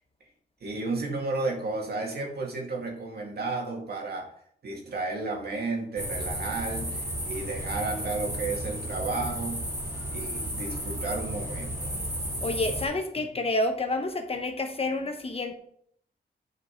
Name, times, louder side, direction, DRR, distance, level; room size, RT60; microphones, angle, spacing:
voice 1, 0.6-4.3 4.6-9.6 10.1-11.9 13.2-13.3, right 3 dB, 65° right, 0 dB, 2.2 m, -33 dB
sound 1, 6.0-12.8, right 1 dB, 15° right, 2.9 m, -33 dB
voice 2, 12.4-15.6, left 2 dB, 35° left, 5 dB, 1.0 m, -29 dB
9.8 x 5.0 x 4.6 m, 0.65 s
wide cardioid pair, 140°, 18 cm